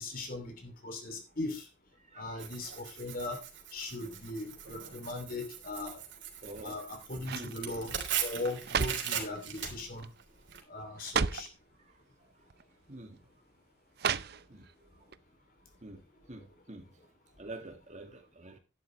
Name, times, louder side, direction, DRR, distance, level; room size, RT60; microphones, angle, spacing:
voice 1, 0.0-1.6 2.2-3.4 3.7-6.0 6.6-10.1 10.7-11.5, left 2 dB, 45° left, 2.8 m, -39 dB
voice 2, 2.1-2.5 6.4-6.8 7.3-7.5 10.8-10.9 12.9-13.2 14.5-14.7 15.8-16.0 16.3-16.9 17.4-18.6, right 1 dB, 40° right, 2.1 m, -46 dB
Tearing, 2.4-10.6, right 8 dB, 70° right, 3.4 m, -40 dB
sound 1, 6.4-6.8 7.2-7.6 8.4-9.2 10.0-10.2 10.5-10.6 11.0-11.6 12.5-12.6 14.0-14.7 15.1-15.2, right 6 dB, 55° right, 0.5 m, -33 dB
11.5 x 11.5 x 3.2 m
head